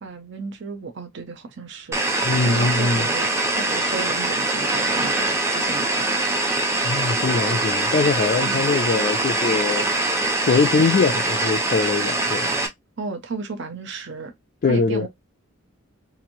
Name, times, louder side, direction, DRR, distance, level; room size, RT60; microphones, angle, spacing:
voice 1, 0.0-2.0 2.5-6.4 8.5-8.7 13.0-14.3 14.6-15.1, right 4 dB, 55° right, 0.6 m, -33 dB
sound 1, 1.9-12.7, right 2 dB, 15° right, 0.5 m, -23 dB
voice 2, 2.2-3.0 6.8-9.9 10.4-12.5 14.6-15.1, left 4 dB, 45° left, 0.3 m, -22 dB
3.0 x 2.5 x 2.6 m
head